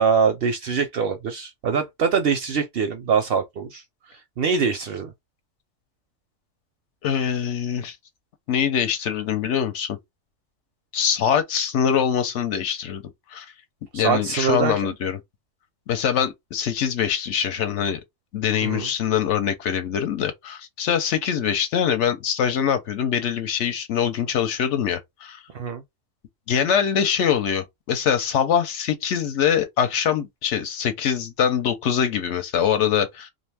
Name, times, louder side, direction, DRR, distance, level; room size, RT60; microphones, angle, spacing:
voice 1, 0.0-3.8 4.1-5.1 13.9-14.7 18.6-18.9 25.5-25.8, right 6 dB, 60° right, 0.6 m, -23 dB
voice 2, 7.0-8.0 8.5-10.0 10.9-13.0 13.3-13.5 13.9-15.2 15.9-18.0 18.3-25.4 26.5-33.3, left 8 dB, 70° left, 0.9 m, -23 dB
2.5 x 2.4 x 3.2 m
omnidirectional pair, 1.3 m